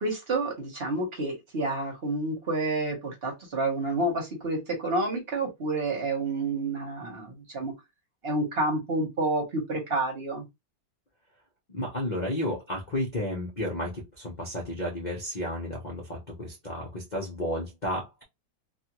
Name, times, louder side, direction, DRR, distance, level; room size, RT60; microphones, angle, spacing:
voice 1, 0.0-7.7 8.2-10.4, right 2 dB, 40° right, 1.0 m, -29 dB
voice 2, 11.7-18.2, left 1 dB, 80° left, 0.4 m, -32 dB
3.3 x 2.2 x 3.0 m
omnidirectional pair, 2.1 m